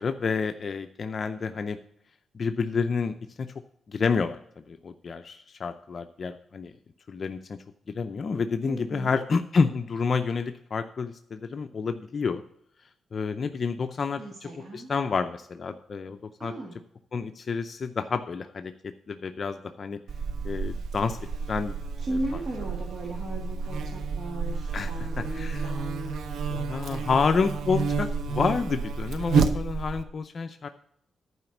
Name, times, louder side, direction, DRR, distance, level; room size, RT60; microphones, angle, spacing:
voice 1, 0.0-1.8 2.3-3.5 3.9-4.4 4.7-6.7 7.1-7.6 7.9-12.4 13.1-16.5 17.1-18.7 19.1-20.0 20.4-21.2 21.5-21.7 24.7-25.7 26.6-30.7, left 5 dB, 45° left, 7 dB, 0.5 m, -29 dB
voice 2, 8.6-9.2 14.2-14.9 16.4-16.8 22.0-27.6, right 1 dB, 40° right, -2 dB, 1.8 m, -37 dB
Buzz, 20.1-30.0, right 5 dB, 80° right, 0.8 m, -30 dB
11.0 x 5.0 x 7.1 m, 0.70 s
cardioid pair, 120°, 0 cm